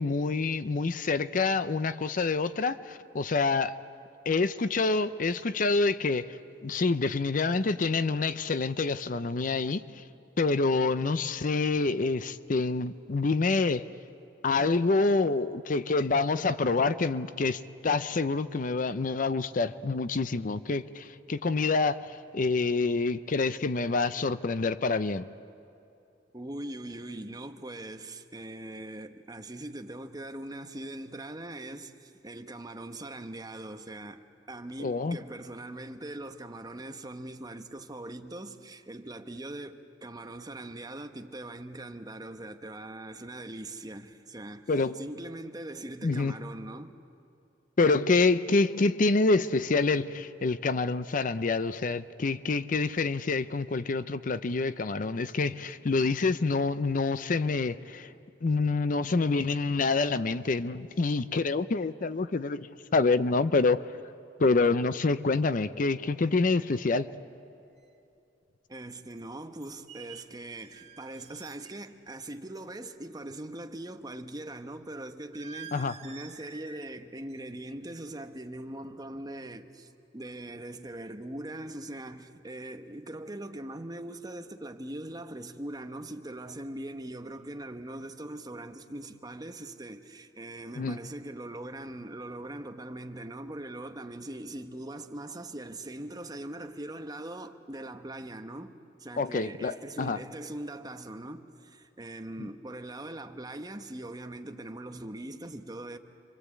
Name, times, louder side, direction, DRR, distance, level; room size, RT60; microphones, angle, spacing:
voice 1, 0.0-3.7 4.3-6.4 6.6-10.0 10.4-13.8 14.4-25.2 34.8-35.2 44.7-45.0 46.0-46.3 47.8-58.1 58.4-62.7 62.9-63.8 64.4-67.1 75.7-75.9 90.8-91.0 99.2-100.2 102.4-102.5, left 3 dB, 50° left, 0.6 m, -27 dB
voice 2, 26.3-47.0 68.7-106.0, right 1 dB, 20° right, 1.1 m, -41 dB
sound 1, 67.8-67.9 69.1-69.2 69.6-71.9 72.2-72.6 75.3-76.9 77.2-77.5 77.9-78.2, right 7 dB, 40° right, 1.7 m, -49 dB
28.5 x 24.0 x 8.4 m
head